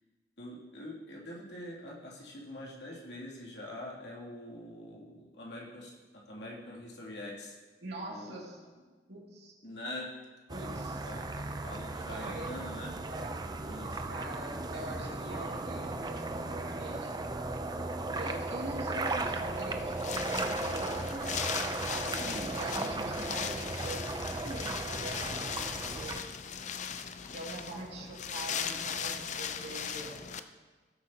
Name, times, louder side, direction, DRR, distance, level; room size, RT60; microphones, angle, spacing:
voice 1, 0.4-7.6 8.1-8.4 9.6-10.1 10.5-12.9 13.6-14.1 22.1-22.6, left 1 dB, 80° left, -4 dB, 2.9 m, -44 dB
voice 2, 7.8-8.6 9.1-9.5 10.5-11.0 12.1-13.5 14.1-17.1 18.1-26.1 27.3-30.2, right 1 dB, 65° right, -3 dB, 2.7 m, -43 dB
sound 1, 10.5-26.2, right 2 dB, 25° right, 0.6 m, -36 dB
Wind, 19.2-30.4, left 7 dB, 45° left, 0.5 m, -38 dB
18.5 x 8.1 x 2.9 m, 1.4 s
head